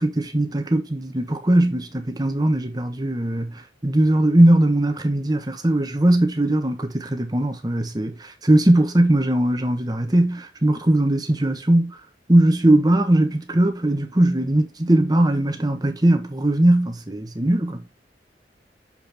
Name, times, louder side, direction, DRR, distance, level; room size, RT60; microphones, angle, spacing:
voice 1, 0.0-12.0 12.3-17.8, right 1 dB, 20° right, 1.1 m, -19 dB
7.2 x 4.4 x 3.5 m
head